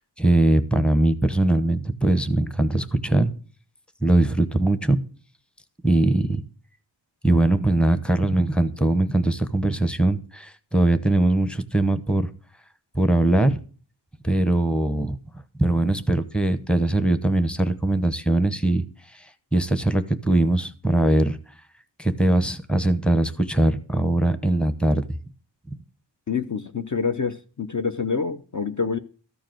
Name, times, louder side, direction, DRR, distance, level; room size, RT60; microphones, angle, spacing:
voice 1, 0.2-3.3 4.0-5.0 5.8-6.4 7.2-12.3 12.9-13.6 14.2-15.2 15.6-18.8 19.1-19.2 19.5-21.4 22.0-25.0, right 2 dB, ahead, 0.9 m, -21 dB
voice 2, 26.3-29.0, left 5 dB, 40° left, 0.7 m, -26 dB
13.5 x 4.8 x 7.7 m
wide cardioid pair, 95°, 44 cm